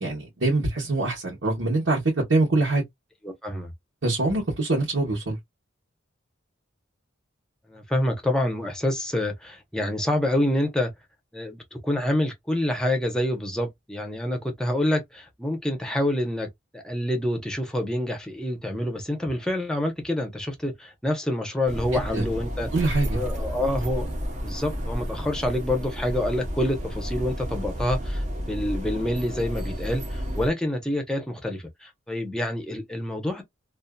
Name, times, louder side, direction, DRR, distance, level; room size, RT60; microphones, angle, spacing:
voice 1, 0.0-2.0 2.3-2.8 4.0-5.4 21.9-22.2 22.7-23.2, right 2 dB, 75° right, 1.2 m, -24 dB
voice 2, 3.2-3.7 7.7-10.9 11.3-22.7 23.1-24.1 24.4-33.4, left 1 dB, 5° left, 0.7 m, -27 dB
sound 1, 21.7-30.5, equal, 35° right, 0.8 m, -31 dB
2.6 x 2.4 x 2.2 m
head